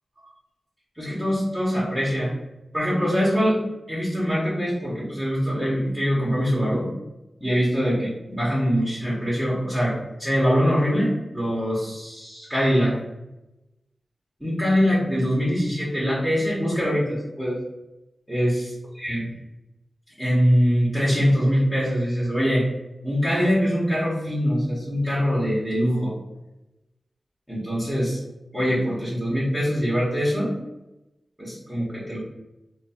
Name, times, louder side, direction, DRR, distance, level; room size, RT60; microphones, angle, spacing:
voice 1, 1.0-2.3 2.7-3.6 3.9-6.9 7.4-13.0 14.4-17.6 18.3-18.7 19.0-19.2 20.2-22.7 23.0-26.1 27.5-28.2 28.5-30.6 31.4-32.2, equal, 5° right, -8 dB, 1.3 m, -23 dB
3.1 x 2.3 x 4.2 m, 0.97 s
wide cardioid pair, 65°, 0 cm